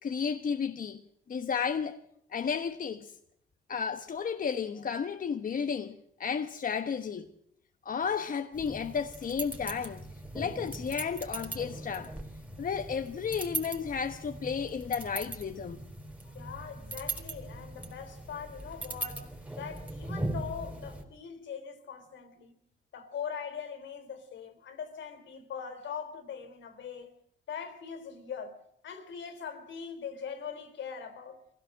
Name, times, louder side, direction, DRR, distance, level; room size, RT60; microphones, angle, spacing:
voice 1, 0.0-1.0 1.3-2.0 2.3-3.1 3.7-7.3 7.8-10.0 10.3-12.1 12.6-15.8, left 6 dB, 45° left, 1.3 m, -33 dB
sound 1, 8.5-21.0, right 2 dB, 5° right, 4.5 m, -40 dB
voice 2, 16.3-22.5 22.9-27.1 27.5-28.6 28.8-31.4, left 7 dB, 70° left, 3.9 m, -41 dB
24.0 x 16.5 x 7.7 m
cardioid pair, 90°, 20 cm